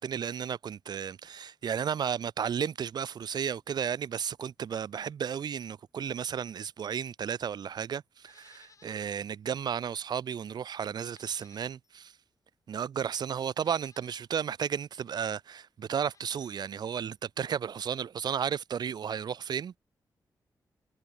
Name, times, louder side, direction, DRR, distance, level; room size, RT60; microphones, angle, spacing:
voice 1, 0.0-12.1 12.7-19.8, right 8 dB, 65° right, 0.8 m, -33 dB
Livestock farm animals working animals, 8.2-9.3 9.6-9.7 11.0-12.0 12.8-12.9 13.5-14.3 16.0-16.9 17.2-17.3, left 5 dB, 45° left, 4.7 m, -62 dB
wide cardioid pair, 125°, 8 cm